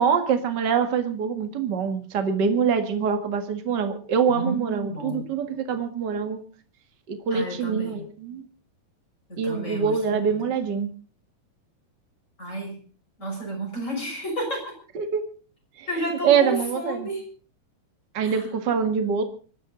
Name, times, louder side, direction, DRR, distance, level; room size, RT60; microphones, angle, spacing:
voice 1, 0.0-6.4 7.1-8.4 9.4-10.9 14.9-15.3 15.8-15.9 16.2-17.1 18.1-19.2, right 6 dB, 45° right, 7 dB, 1.3 m, -24 dB
voice 2, 4.2-5.3 7.3-8.1 9.3-10.4 12.4-12.8 13.2-14.7 15.9-17.3 18.2-18.5, right 1 dB, 15° left, 2 dB, 6.4 m, -31 dB
25.0 x 12.0 x 4.0 m, 0.38 s
omnidirectional pair, 4.7 m